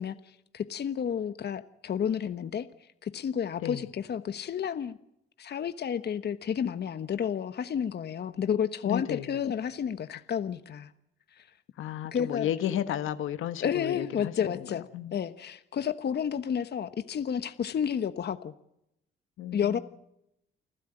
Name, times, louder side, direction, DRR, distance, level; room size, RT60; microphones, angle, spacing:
voice 1, 0.0-2.7 3.0-5.0 5.4-10.9 11.3-11.5 12.1-12.5 13.6-18.5 19.5-19.8, left 8 dB, 55° left, 12 dB, 1.2 m, -31 dB
voice 2, 8.8-9.4 11.8-15.1 19.4-19.8, left 11 dB, 80° left, 11 dB, 1.5 m, -33 dB
29.5 x 12.5 x 9.0 m, 0.81 s
cardioid pair, 70°, 20 cm